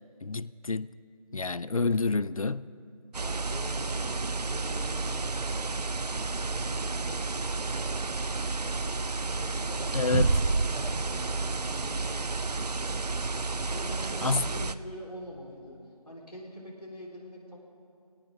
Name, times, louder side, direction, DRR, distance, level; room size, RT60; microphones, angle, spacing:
voice 1, 0.2-0.9 1.3-2.7 9.9-10.4 14.2-14.5, left 3 dB, 60° left, 0.4 m, -28 dB
sound 1, 3.1-14.7, right 3 dB, 90° right, 0.6 m, -31 dB
voice 2, 3.2-5.9 6.4-10.4 10.7-13.0 13.7-15.8 16.0-17.6, equal, 85° left, 4.5 m, -45 dB
21.5 x 18.0 x 3.8 m
figure-of-eight pair, 180°, 20 cm